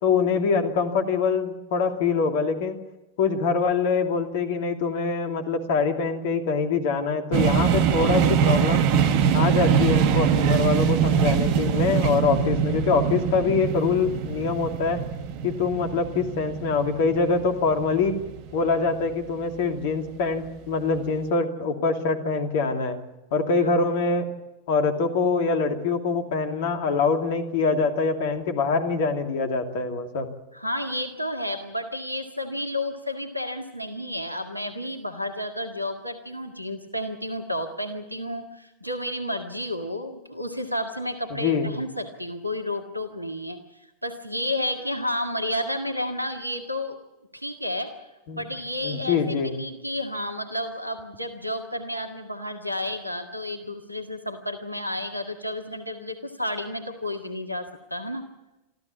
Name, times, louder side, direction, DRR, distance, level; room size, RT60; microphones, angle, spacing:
voice 1, 0.0-2.8 3.2-8.9 9.3-15.0 15.4-18.2 18.5-23.0 23.3-24.3 24.7-30.3 41.3-41.8 48.3-48.4 48.8-49.5, left 4 dB, 50° left, 5 dB, 2.7 m, -24 dB
sound 1, 7.3-19.1, right 8 dB, 45° right, 1.5 m, -23 dB
voice 2, 30.5-43.6 44.0-47.0 47.3-47.9 48.3-58.3, left 1 dB, 90° right, 6 dB, 1.8 m, -31 dB
25.5 x 14.5 x 8.5 m, 1.0 s
figure-of-eight pair, 90°, 0 cm